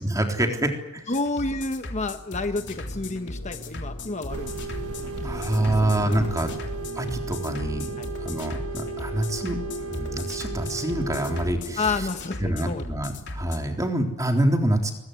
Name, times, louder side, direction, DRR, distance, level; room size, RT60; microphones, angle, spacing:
voice 1, 0.0-1.2 5.2-6.6 6.9-12.1 12.4-14.9, right 1 dB, 15° right, 3 dB, 3.7 m, -26 dB
sound 1, 1.1-13.6, left 2 dB, 55° left, 3.5 m, -37 dB
voice 2, 1.1-4.5 5.0-5.5 5.8-6.2 8.0-8.1 11.8-12.8, left 3 dB, 30° left, 8 dB, 1.1 m, -30 dB
sound 2, 2.5-12.8, left 1 dB, 70° left, 4.0 m, -42 dB
sound 3, 4.3-11.5, right 4 dB, 85° right, 1.5 m, -35 dB
22.5 x 22.0 x 9.7 m, 0.94 s
head